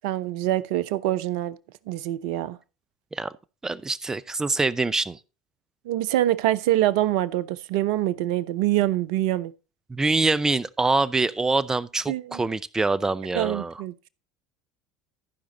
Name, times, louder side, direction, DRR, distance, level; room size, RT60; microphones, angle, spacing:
voice 1, 0.0-1.6 1.9-2.6 5.8-9.5 12.1-12.4 13.3-14.1, right 14 dB, 65° right, 0.6 m, -25 dB
voice 2, 3.6-5.2 9.9-13.7, right 3 dB, 15° right, 0.7 m, -25 dB
14.5 x 5.1 x 4.0 m
hypercardioid pair, 70°, 3 cm